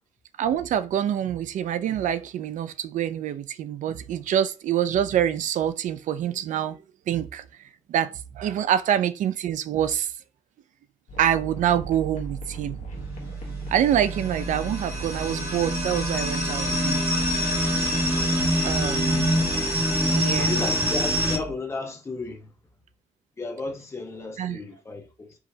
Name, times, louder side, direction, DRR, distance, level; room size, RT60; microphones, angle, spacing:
voice 1, 0.4-6.8 7.1-7.4 7.9-10.1 11.2-12.8 13.7-17.0 18.6-19.4 20.1-20.6 24.4-24.6, right 10 dB, 85° right, 0.4 m, -26 dB
sound 1, 11.1-21.5, right 3 dB, 85° left, 1.2 m, -37 dB
sound 2, 12.9-21.4, equal, 25° right, 2.0 m, -25 dB
voice 2, 20.4-22.5 23.4-25.3, left 3 dB, 20° left, 0.8 m, -34 dB
4.7 x 3.1 x 2.7 m
wide cardioid pair, 175°, 13 cm